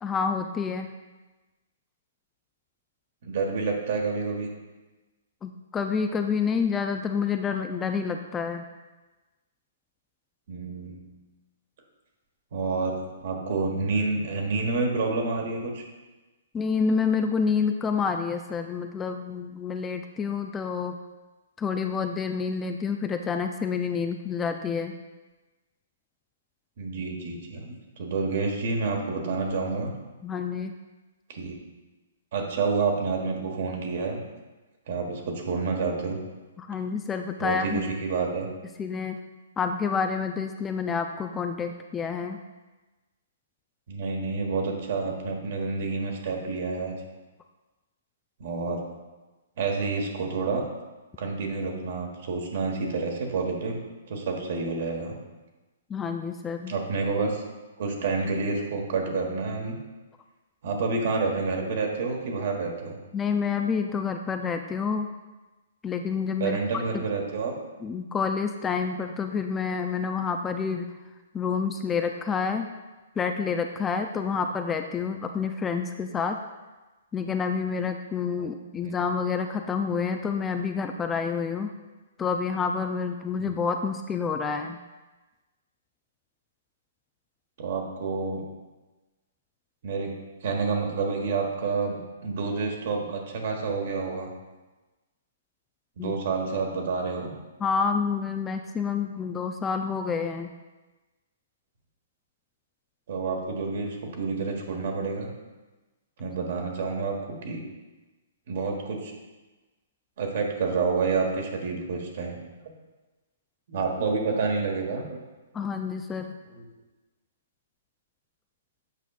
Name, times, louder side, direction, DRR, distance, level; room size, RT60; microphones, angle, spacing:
voice 1, 0.0-0.9 5.4-8.6 16.5-21.0 21.6-25.0 30.2-30.8 36.6-37.9 38.8-39.2 39.6-42.4 55.9-56.7 63.1-65.1 65.8-67.0 67.8-71.0 71.3-72.7 73.2-76.4 77.1-81.7 82.2-84.8 96.0-96.1 97.6-100.5 115.5-116.4, left 5 dB, 15° left, 6 dB, 0.3 m, -28 dB
voice 2, 3.2-4.5 10.5-11.0 12.5-12.9 13.2-15.8 26.8-29.9 31.3-31.6 32.3-34.2 34.9-36.2 37.4-38.5 43.9-46.9 48.4-48.8 49.6-50.6 51.2-53.8 54.1-55.1 56.7-57.4 57.8-59.8 60.6-62.9 66.4-67.5 78.4-78.5 78.8-78.9 83.4-83.5 87.6-88.4 89.8-90.1 90.4-92.0 92.2-94.3 96.0-97.3 103.1-105.3 106.2-107.6 108.5-109.1 110.2-112.7 113.7-115.2 116.5-116.6, right 4 dB, 60° right, 1 dB, 1.4 m, -29 dB
8.1 x 5.5 x 2.4 m, 1.2 s
hypercardioid pair, 140°, 0 cm